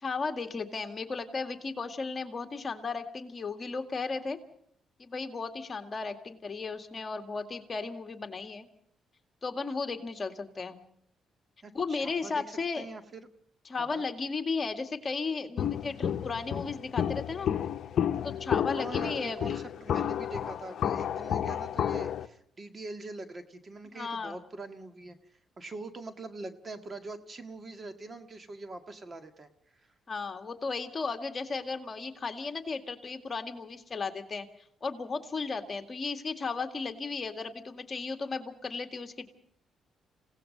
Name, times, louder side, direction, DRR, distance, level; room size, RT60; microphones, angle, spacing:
voice 1, 0.0-4.4 5.0-8.7 9.4-10.8 11.7-12.9 13.7-17.5 18.2-19.6 23.9-24.4 30.1-34.5 34.8-39.3, left 4 dB, 35° left, 6 dB, 2.1 m, -35 dB
voice 2, 11.6-12.4 12.7-13.3 13.8-14.0 18.7-25.2 25.6-29.9, right 2 dB, 30° right, 8 dB, 1.8 m, -43 dB
Walk footsteps, 15.6-22.3, left 9 dB, 65° left, 0.9 m, -31 dB
28.5 x 17.5 x 5.3 m, 0.63 s
cardioid pair, 90°, 0 cm